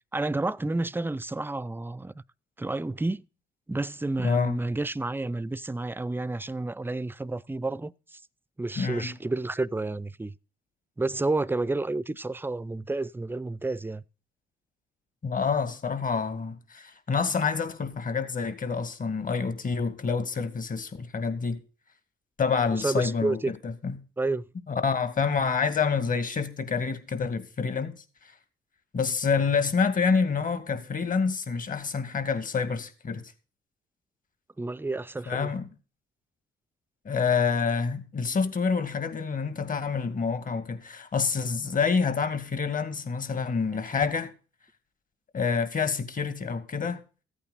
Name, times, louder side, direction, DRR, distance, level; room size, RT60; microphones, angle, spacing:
voice 1, 0.1-2.1 2.6-3.2 3.7-8.2 8.6-10.3 11.0-14.0 22.8-23.5 24.2-24.4 34.6-35.5, right 2 dB, 10° right, 0.5 m, -30 dB
voice 2, 4.2-4.6 8.8-9.2 15.2-21.6 22.4-24.0 24.7-28.0 28.9-33.2 35.3-35.7 37.0-44.3 45.3-47.0, left 5 dB, 45° left, 2.3 m, -27 dB
14.5 x 8.9 x 4.1 m
cardioid pair, 90°, 20 cm